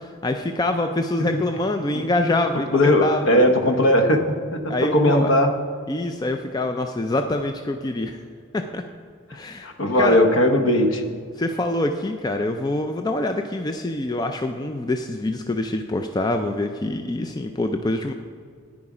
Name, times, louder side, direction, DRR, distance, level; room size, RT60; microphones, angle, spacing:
voice 1, 0.0-3.7 4.7-5.3 5.9-8.2 8.5-8.8 9.3-9.7 10.0-10.2 11.4-18.1, left 2 dB, 20° left, 6 dB, 0.3 m, -25 dB
voice 2, 2.7-5.5 9.6-11.0, left 1 dB, 60° left, 6 dB, 1.0 m, -18 dB
11.0 x 9.6 x 4.9 m, 2.2 s
head